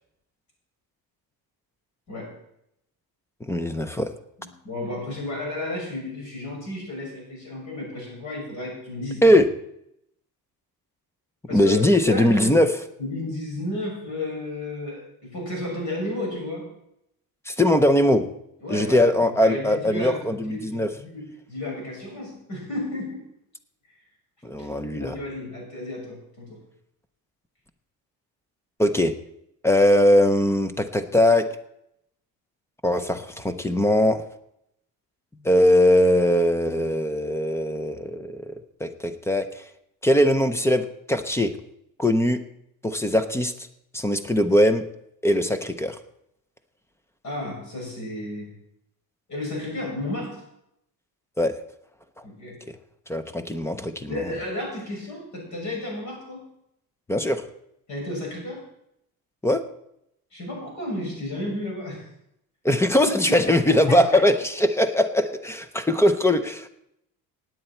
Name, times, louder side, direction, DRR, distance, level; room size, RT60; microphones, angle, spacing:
voice 1, 3.4-4.1 9.2-9.5 11.5-12.7 17.5-18.3 18.7-20.9 24.4-25.2 28.8-29.1 29.6-31.5 32.8-34.2 35.4-38.5 38.8-39.6 40.0-41.5 42.0-42.4 42.8-43.5 43.9-44.9 45.2-46.0 51.4-51.6 53.1-54.2 57.1-57.4 59.4-59.6 62.6-66.7, left 1 dB, 5° left, 10 dB, 0.5 m, -20 dB
voice 2, 4.4-9.2 11.5-12.7 13.0-16.7 18.6-23.2 24.6-24.7 25.0-26.6 47.2-48.5 49.3-50.4 52.2-52.6 54.1-56.4 57.9-58.6 60.3-62.0 63.0-64.2, left 1 dB, 50° left, -1 dB, 6.5 m, -33 dB
16.5 x 9.2 x 4.2 m, 0.78 s
cardioid pair, 170°, 38 cm